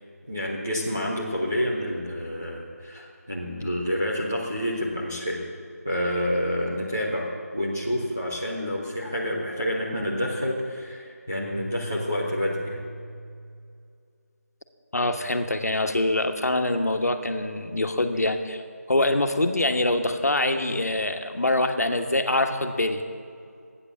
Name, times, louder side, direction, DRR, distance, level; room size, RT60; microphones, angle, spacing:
voice 1, 0.3-5.4 5.8-7.3 7.5-12.8, equal, 10° right, -8 dB, 0.5 m, -28 dB
sound 1, 11.3-13.8, right 1 dB, 20° left, 1.2 m, -39 dB
voice 2, 14.9-18.6 18.9-23.0, left 2 dB, 70° left, 6 dB, 1.4 m, -24 dB
13.0 x 9.8 x 7.2 m, 2.3 s
figure-of-eight pair, 175°, 9 cm